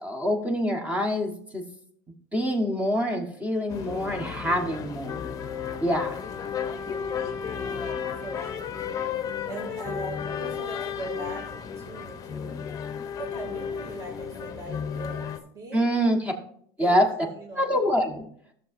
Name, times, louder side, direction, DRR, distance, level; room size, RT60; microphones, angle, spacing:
voice 1, 0.0-1.6 2.3-5.2 5.8-6.2 15.7-16.3 16.8-17.1 17.5-18.2, equal, 10° right, 4 dB, 1.2 m, -25 dB
sound 1, 3.7-15.4, left 7 dB, 30° left, 0.8 m, -33 dB
voice 2, 5.9-6.3 6.8-7.4 8.2-8.9 9.5-11.4 11.8-12.6 13.2-16.0 16.8-17.8, right 2 dB, 35° right, -2 dB, 2.4 m, -40 dB
14.0 x 6.7 x 2.6 m, 0.63 s
supercardioid pair, 125°, 12 cm